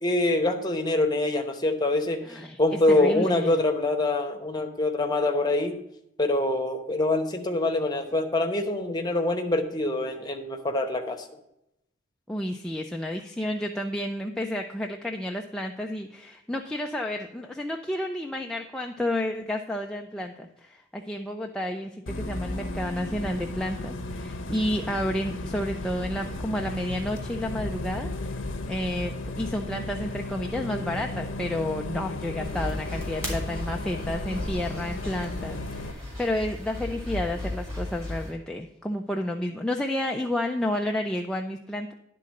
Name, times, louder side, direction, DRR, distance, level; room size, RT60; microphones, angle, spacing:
voice 1, 0.0-5.8 6.2-11.2, left 2 dB, 20° left, 4 dB, 0.9 m, -25 dB
voice 2, 2.2-2.6 2.9-3.5 12.3-28.4 28.7-41.9, left 1 dB, 5° left, 1 dB, 0.4 m, -31 dB
Bus, 22.1-35.9, left 2 dB, 70° left, 0.7 m, -35 dB
sound 1, 32.4-38.3, left 1 dB, 15° right, 3.2 m, -36 dB
11.0 x 3.8 x 6.3 m, 0.83 s
head